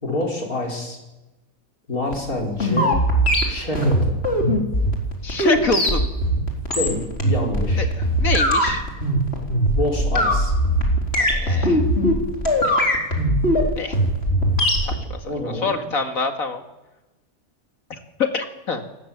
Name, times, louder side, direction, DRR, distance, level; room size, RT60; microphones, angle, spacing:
voice 1, 0.0-1.0 1.9-3.0 3.5-4.2 6.7-7.9 9.8-10.5 15.3-15.8, left 2 dB, 90° left, 0 dB, 5.7 m, -27 dB
sound 1, 2.1-15.0, equal, 45° left, 4.7 m, -20 dB
voice 2, 5.2-6.1 7.8-8.8 11.2-11.8 12.6-12.9 13.8-14.0 14.8-16.6 17.9-18.0 18.3-18.8, left 3 dB, 70° left, 5 dB, 2.5 m, -27 dB
30.0 x 19.0 x 7.5 m, 1.0 s
omnidirectional pair, 1.5 m